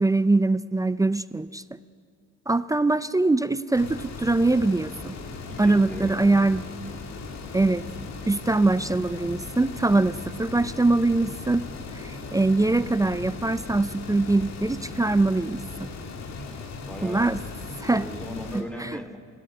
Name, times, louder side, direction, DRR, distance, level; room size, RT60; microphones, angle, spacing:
voice 1, 0.0-1.6 2.5-5.1 5.6-6.6 7.5-7.9 8.3-11.6 11.9-15.9 17.0-17.4 17.8-18.0 18.5-19.0, right 2 dB, 10° right, 14 dB, 0.5 m, -23 dB
sound 1, 3.7-18.6, left 4 dB, 60° left, 2.2 m, -38 dB
voice 2, 5.5-6.4 16.4-17.3 17.9-19.1, equal, 5° left, 6 dB, 2.6 m, -38 dB
20.5 x 14.0 x 9.7 m, 2.1 s
cardioid pair, 90°, 30 cm